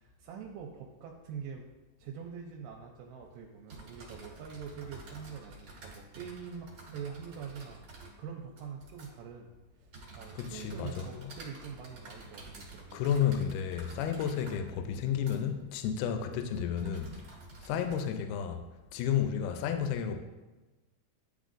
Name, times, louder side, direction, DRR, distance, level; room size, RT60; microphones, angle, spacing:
voice 1, 0.0-1.7 2.0-7.8 8.2-9.5 9.8-13.0, right 6 dB, 90° right, 2.2 m, -44 dB
sound 1, 3.2-18.0, right 3 dB, 50° right, 1.8 m, -51 dB
voice 2, 10.4-11.0 12.9-17.2 17.7-18.6 18.9-20.2, left 8 dB, 80° left, 2.1 m, -31 dB
10.0 x 3.8 x 2.5 m
omnidirectional pair, 3.8 m